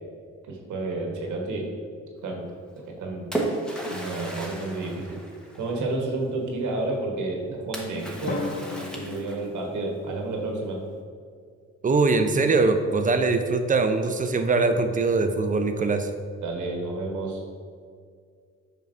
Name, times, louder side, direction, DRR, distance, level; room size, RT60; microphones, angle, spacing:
voice 1, 0.5-1.7 2.2-2.5 3.0-3.3 3.9-5.2 5.6-8.5 8.8-10.8 16.4-17.4, right 2 dB, 75° right, 0 dB, 1.1 m, -30 dB
Splash splatter, 2.7-5.9 7.7-9.7, right 1 dB, 5° left, 1.0 m, -34 dB
Drum, 8.3-10.3, left 4 dB, 30° left, 0.7 m, -35 dB
voice 2, 11.8-16.1, right 3 dB, 25° right, 7 dB, 0.5 m, -22 dB
7.4 x 5.6 x 2.5 m, 2.1 s
cardioid pair, 90°, 30 cm